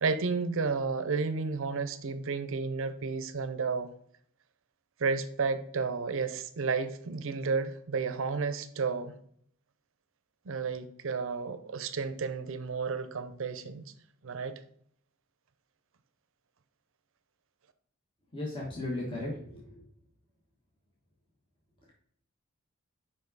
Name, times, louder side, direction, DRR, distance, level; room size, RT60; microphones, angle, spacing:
voice 1, 0.0-3.9 5.0-9.1 10.5-13.9 14.2-14.6, right 4 dB, 65° right, 12 dB, 0.6 m, -32 dB
voice 2, 18.3-19.6, left 1 dB, 25° left, -4 dB, 1.3 m, -35 dB
5.4 x 5.2 x 3.9 m, 0.65 s
head